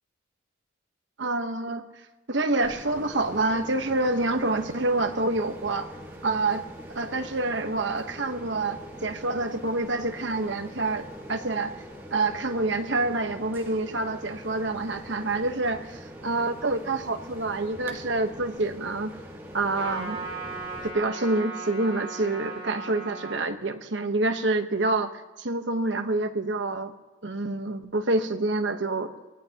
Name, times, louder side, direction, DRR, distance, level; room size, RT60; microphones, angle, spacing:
voice 1, 1.2-1.8 2.3-5.9 6.2-6.6 6.9-11.7 12.1-19.1 19.5-20.2 20.8-25.1 25.4-26.9 27.2-29.1, right 2 dB, 65° right, 7 dB, 1.2 m, -27 dB
sound 1, 2.6-20.9, equal, 10° right, 1.8 m, -43 dB
Trumpet, 19.7-23.5, right 3 dB, 25° right, 5.5 m, -37 dB
23.0 x 17.0 x 3.0 m, 1.2 s
head